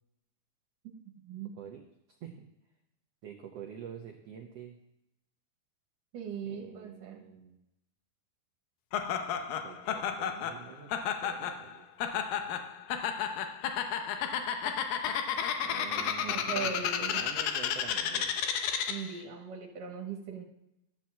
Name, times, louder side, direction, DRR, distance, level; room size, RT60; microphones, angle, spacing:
voice 1, 1.5-1.9 2.2-2.5 3.2-4.8 6.4-7.6 9.5-11.8 12.2-12.6 15.6-18.3, right 8 dB, 90° right, 3 dB, 1.3 m, -47 dB
voice 2, 6.1-7.2 16.2-17.2 18.9-20.4, right 6 dB, 65° right, 0 dB, 2.8 m, -39 dB
Laughter, 8.9-19.2, left 8 dB, 75° left, 2.5 m, -32 dB
13.0 x 4.5 x 7.3 m, 0.88 s
omnidirectional pair, 4.2 m